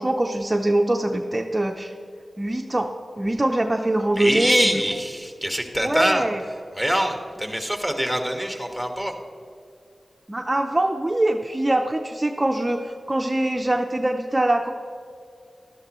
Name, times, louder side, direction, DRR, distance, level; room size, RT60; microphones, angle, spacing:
voice 1, 0.0-1.9 2.4-4.8 5.8-6.4 10.3-14.7, right 1 dB, 25° right, 3 dB, 0.6 m, -23 dB
voice 2, 4.2-6.2 6.7-9.1, equal, 5° left, 4 dB, 1.5 m, -24 dB
12.0 x 12.0 x 3.1 m, 2.5 s
cardioid pair, 55°, 0 cm